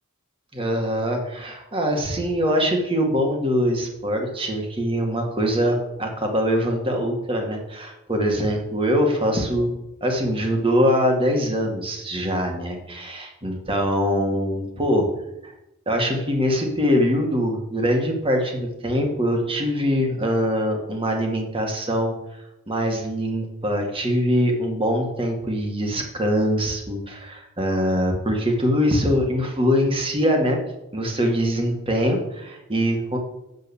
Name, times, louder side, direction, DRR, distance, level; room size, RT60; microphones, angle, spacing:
voice 1, 0.5-9.7 10.0-15.1 15.4-15.5 15.9-22.1 22.7-30.6 30.9-33.2, equal, 25° right, 2 dB, 2.0 m, -23 dB
7.9 x 6.7 x 7.3 m, 0.90 s
head